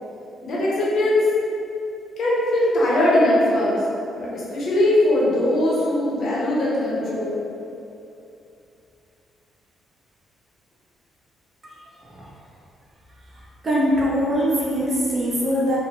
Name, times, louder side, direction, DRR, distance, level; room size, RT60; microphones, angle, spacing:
voice 1, 0.4-1.3 2.2-3.8 4.2-7.4, left 1 dB, 55° left, -6 dB, 0.7 m, -20 dB
voice 2, 13.6-15.8, equal, 30° right, -5 dB, 0.5 m, -21 dB
2.8 x 2.1 x 4.0 m, 2.7 s
cardioid pair, 165°, 0 cm